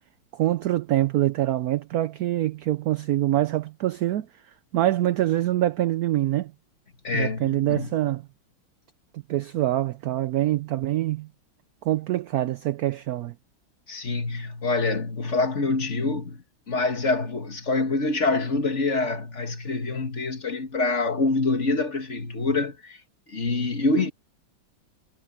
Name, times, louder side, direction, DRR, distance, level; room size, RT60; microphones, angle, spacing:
voice 1, 0.3-4.3 4.7-6.5 7.1-8.2 9.3-11.3 11.8-13.3, right 14 dB, 75° right, 0.8 m, -25 dB
voice 2, 7.0-8.1 13.9-23.0 23.3-24.1, left 3 dB, 40° left, 2.0 m, -26 dB
omnidirectional pair, 2.1 m